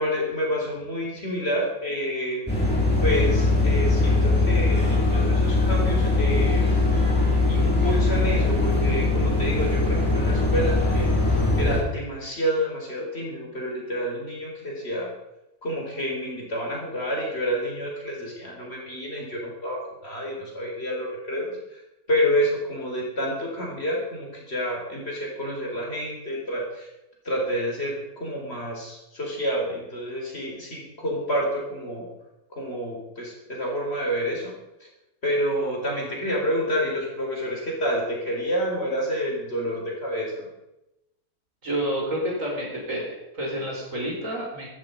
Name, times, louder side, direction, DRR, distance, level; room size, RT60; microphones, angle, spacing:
voice 1, 0.0-2.4 3.0-6.7 7.5-15.1 15.6-21.8 22.1-26.9 27.2-32.1 32.5-34.5 35.2-40.5, equal, 40° left, -1 dB, 4.6 m, -29 dB
sound 1, 2.5-11.8, left 2 dB, 5° left, 5.9 m, -21 dB
voice 2, 41.6-44.7, right 1 dB, 55° right, -2 dB, 5.4 m, -29 dB
16.0 x 13.0 x 5.3 m, 0.93 s
omnidirectional pair, 1.6 m